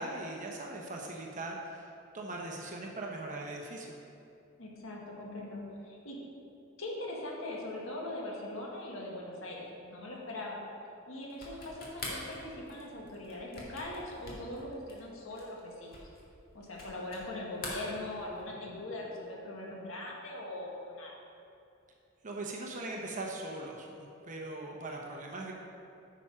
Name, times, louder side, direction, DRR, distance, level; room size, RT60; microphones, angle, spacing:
voice 1, 0.0-4.0 22.2-25.5, right 2 dB, 40° right, 0 dB, 0.9 m, -40 dB
voice 2, 4.6-6.2 6.8-10.6 11.1-15.9 16.5-21.2, left 1 dB, 85° left, -2 dB, 1.8 m, -41 dB
sound 1, 11.3-17.3 17.5-18.6, left 2 dB, 50° left, 2.0 m, -45 dB
9.2 x 6.1 x 5.6 m, 2.7 s
head